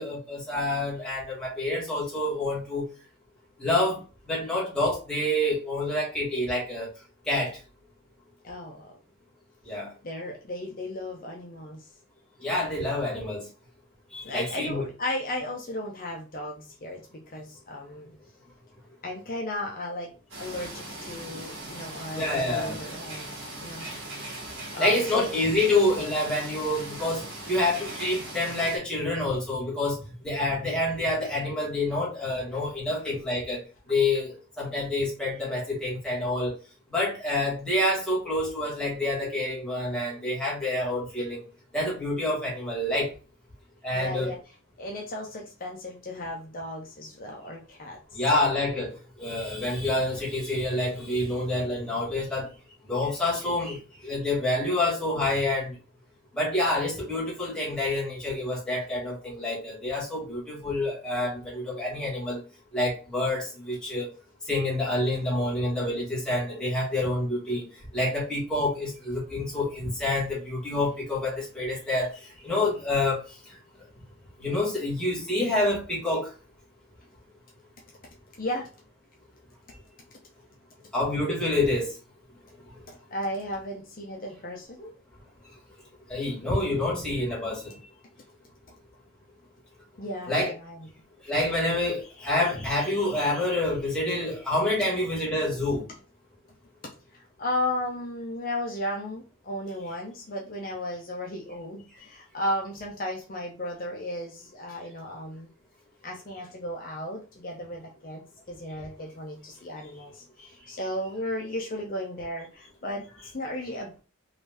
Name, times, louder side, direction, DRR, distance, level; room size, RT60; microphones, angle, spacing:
voice 1, 0.0-2.9 3.6-6.9 7.3-7.6 9.7-9.9 12.4-13.5 14.1-14.9 22.1-22.7 24.8-33.6 33.9-36.6 36.9-41.4 41.7-43.1 43.8-44.4 48.1-52.5 52.9-55.8 56.3-62.4 62.7-64.1 64.5-67.7 67.9-73.6 74.4-76.3 80.9-82.0 86.1-87.8 90.3-90.5 91.2-95.8, left 1 dB, 5° left, 1.5 m, -27 dB
voice 2, 8.4-9.0 10.0-11.9 14.2-18.1 19.0-20.1 20.4-23.3 23.6-24.0 24.7-25.3 43.9-44.4 44.8-48.2 78.4-78.7 82.9-84.9 90.0-90.9 97.1-105.5 106.0-114.0, left 1 dB, 45° left, 0.7 m, -35 dB
sound 1, 20.3-28.8, right 1 dB, 65° right, 1.5 m, -39 dB
3.8 x 2.6 x 3.3 m
head